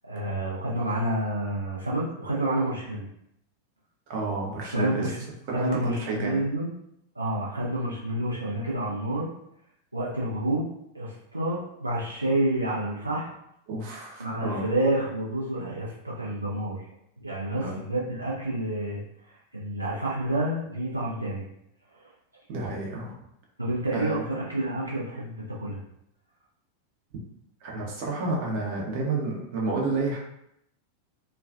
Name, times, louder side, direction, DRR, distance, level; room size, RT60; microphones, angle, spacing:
voice 1, 0.0-3.1 4.7-5.2 5.5-6.7 7.2-9.3 9.9-10.7 10.9-13.3 14.2-16.9 17.2-19.0 19.3-21.4 22.0-22.1 23.6-25.8, right 1 dB, 85° right, -6 dB, 0.4 m, -29 dB
voice 2, 4.1-5.1 5.5-6.4 13.7-14.7 17.6-17.8 22.5-23.1 23.9-24.3 27.6-30.2, right 3 dB, 45° right, -2 dB, 0.6 m, -30 dB
2.2 x 2.2 x 2.4 m, 0.78 s
figure-of-eight pair, 90°, 0 cm